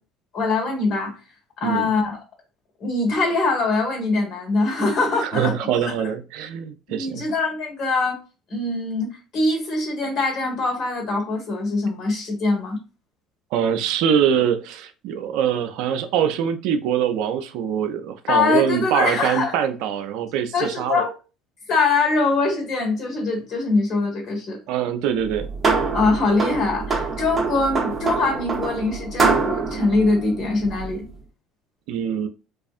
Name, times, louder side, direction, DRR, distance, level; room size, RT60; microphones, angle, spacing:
voice 1, 0.3-1.2 1.6-2.2 2.8-5.5 5.8-5.9 6.9-8.2 8.5-12.8 18.3-19.5 20.5-21.1 21.7-24.6 25.9-31.1, left 3 dB, 60° left, 1.4 m, -23 dB
voice 2, 5.2-7.2 13.5-21.0 24.7-25.5 31.9-32.3, right 8 dB, 70° right, 0.3 m, -23 dB
sound 1, 25.2-31.1, right 4 dB, 30° right, 0.7 m, -25 dB
2.4 x 2.4 x 2.4 m
hypercardioid pair, 70°, 0 cm